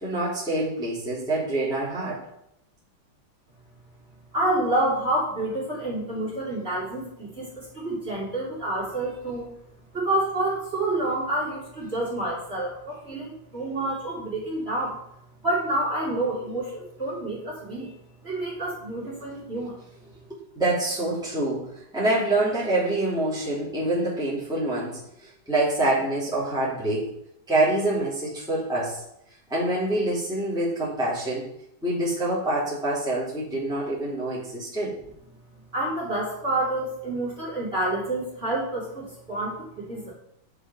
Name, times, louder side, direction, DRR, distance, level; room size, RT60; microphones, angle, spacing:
voice 1, 0.0-2.2 20.6-27.1 27.5-29.0 29.5-31.5 31.8-35.0, right 1 dB, ahead, -9 dB, 2.9 m, -26 dB
voice 2, 4.3-9.5 9.9-15.0 15.4-17.9 18.2-19.8 35.7-40.1, right 1 dB, 30° right, -6 dB, 3.6 m, -28 dB
10.0 x 4.9 x 5.6 m, 0.78 s
omnidirectional pair, 2.3 m